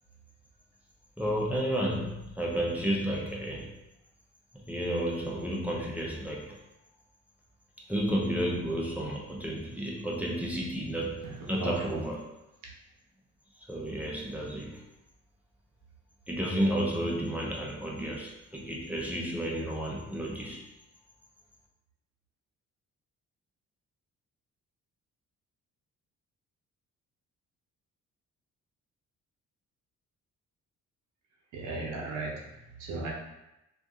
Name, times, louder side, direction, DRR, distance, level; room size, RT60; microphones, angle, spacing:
voice 1, 1.2-3.7 4.5-6.6 7.9-12.2 13.7-14.8 16.3-20.6, equal, 5° right, -3 dB, 0.7 m, -32 dB
voice 2, 11.2-12.0 31.5-33.1, right 3 dB, 85° right, -2 dB, 0.9 m, -36 dB
2.6 x 2.5 x 3.7 m, 0.94 s
cardioid pair, 90°, 30 cm